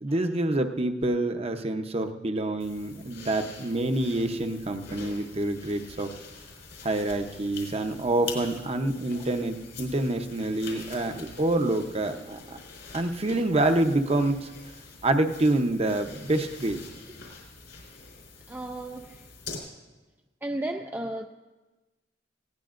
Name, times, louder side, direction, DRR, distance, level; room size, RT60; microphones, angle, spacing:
voice 1, 0.0-6.1 6.8-12.6 12.9-14.5 15.0-16.8, right 2 dB, 35° right, 6 dB, 0.8 m, -27 dB
sound 1, 2.6-19.6, left 4 dB, 80° left, 4.1 m, -45 dB
voice 2, 18.5-19.3 20.4-21.3, right 1 dB, 10° right, 4 dB, 0.4 m, -34 dB
19.0 x 17.0 x 2.5 m, 1.2 s
head